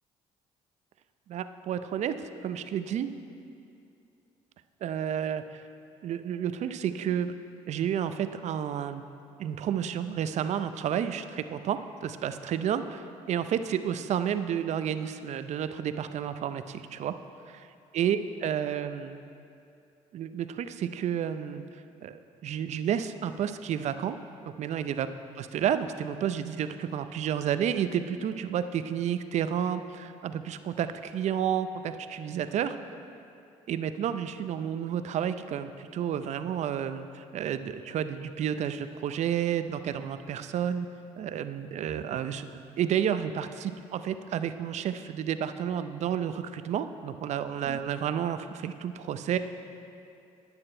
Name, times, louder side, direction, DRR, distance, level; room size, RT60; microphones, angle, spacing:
voice 1, 1.3-3.1 4.8-5.6 6.0-7.3 7.7-9.0 9.4-17.2 17.5-17.6 17.9-19.2 20.1-21.6 22.0-24.2 24.4-25.1 25.4-32.8 33.7-40.9 41.2-49.4, right 9 dB, 60° right, 11 dB, 0.5 m, -31 dB
9.7 x 8.8 x 4.4 m, 2.6 s
supercardioid pair, 75°, 14 cm